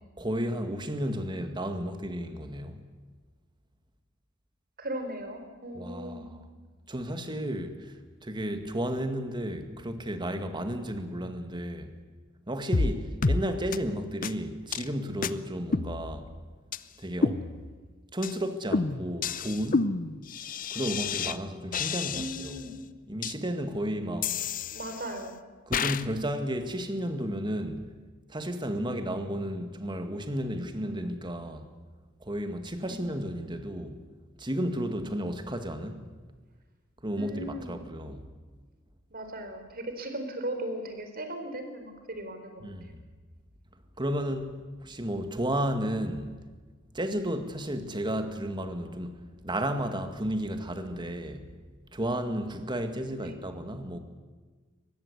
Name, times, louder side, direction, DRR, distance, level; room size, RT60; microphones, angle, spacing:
voice 1, 0.2-2.8 5.7-6.4 6.9-7.9 8.2-11.9 12.5-16.3 17.0-17.4 18.1-19.9 20.7-22.6 23.1-24.6 25.7-27.8 28.3-31.7 32.2-34.0 34.4-36.0 37.0-38.2 42.6-43.0 44.0-44.5 44.8-46.4 46.9-49.2 49.4-51.5 51.9-54.0, equal, 20° right, 2.1 m, -33 dB
voice 2, 4.8-6.3 22.1-22.8 24.7-25.4 32.8-33.0 37.2-37.8 39.1-42.9 53.2-53.3, right 1 dB, 45° right, 4.1 m, -37 dB
sound 1, 12.7-12.9 13.2-13.4 13.7-13.8 14.2-14.3 14.7-14.9 15.2-15.3 15.7-16.4 16.7-16.8 17.2-17.8 18.2-18.4 18.7-21.4 21.7-22.6 23.2-23.3 24.2-25.2 25.7-26.0, left 4 dB, 40° left, 0.7 m, -29 dB
24.0 x 20.0 x 8.3 m
head